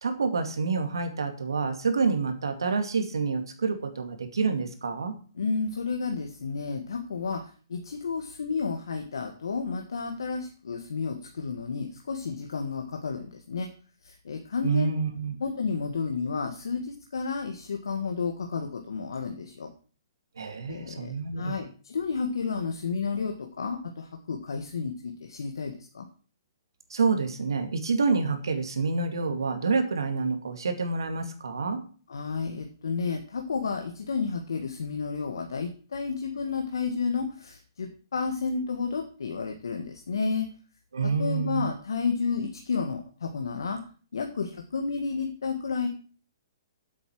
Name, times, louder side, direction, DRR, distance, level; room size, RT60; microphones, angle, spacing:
voice 1, 0.0-5.1 14.6-15.4 20.4-21.6 26.9-31.8 40.9-41.7, right 4 dB, 85° right, 6 dB, 2.3 m, -28 dB
voice 2, 5.4-13.7 14.0-14.9 15.4-19.7 20.7-26.0 32.1-40.5 41.2-43.8 44.1-45.9, left 5 dB, 80° left, 3 dB, 1.6 m, -31 dB
8.2 x 8.0 x 6.2 m, 0.40 s
hypercardioid pair, 135°, 2 cm